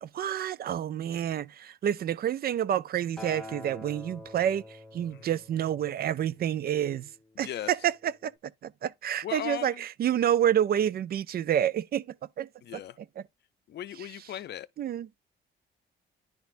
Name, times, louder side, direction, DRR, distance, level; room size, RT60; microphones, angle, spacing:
voice 1, 0.0-7.1 7.4-8.3 8.6-12.0 12.4-13.2 14.8-15.1, right 10 dB, 50° right, 0.4 m, -29 dB
Acoustic guitar, 3.2-7.5 8.3-8.4, left 2 dB, 5° left, 1.1 m, -47 dB
voice 2, 9.2-9.8 12.6-13.0 13.7-14.7, left 12 dB, 60° left, 0.5 m, -37 dB
10.5 x 4.0 x 2.5 m
cardioid pair, 90°, 20 cm